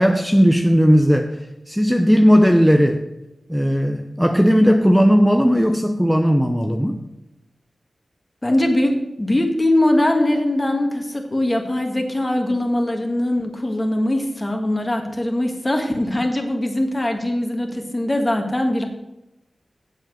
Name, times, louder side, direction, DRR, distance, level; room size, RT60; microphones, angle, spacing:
voice 1, 0.0-3.0 3.5-7.1, equal, ahead, 5 dB, 0.7 m, -16 dB
voice 2, 8.4-18.9, left 1 dB, 25° left, 3 dB, 1.9 m, -21 dB
7.7 x 7.4 x 6.3 m, 0.97 s
cardioid pair, 60°, 0 cm